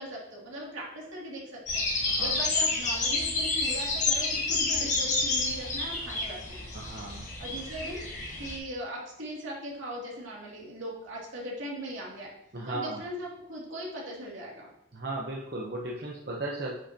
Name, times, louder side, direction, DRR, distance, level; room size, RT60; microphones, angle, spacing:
voice 1, 0.0-1.8 2.2-6.6 7.4-8.0 8.4-12.3 12.7-14.7, equal, 85° right, -4 dB, 2.7 m, -39 dB
sound 1, 1.7-8.6, left 3 dB, 40° left, 1.8 m, -29 dB
voice 2, 6.7-7.3 12.5-13.1 14.9-16.7, right 2 dB, 55° right, -3 dB, 0.9 m, -36 dB
9.7 x 6.2 x 2.9 m, 0.81 s
head